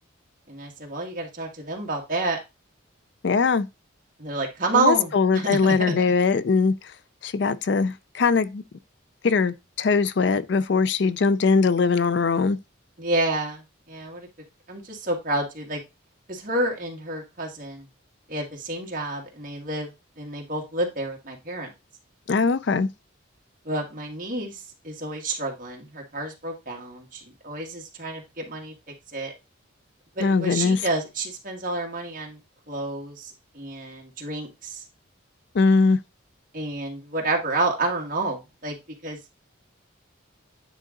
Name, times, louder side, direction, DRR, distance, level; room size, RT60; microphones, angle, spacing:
voice 1, 0.5-2.4 4.2-5.6 13.0-13.6 13.9-14.3 14.7-15.8 16.3-17.9 18.3-19.9 20.2-21.7 23.7-24.6 24.8-28.7 29.1-29.3 30.2-32.4 32.7-34.8 36.5-38.8 39.0-39.2, right 2 dB, 40° right, 1.7 m, -29 dB
voice 2, 3.2-3.7 4.7-6.9 7.2-8.6 9.2-12.6 22.3-22.9 30.2-30.9 35.5-36.0, left 4 dB, 55° left, 0.4 m, -21 dB
9.3 x 3.8 x 3.8 m
head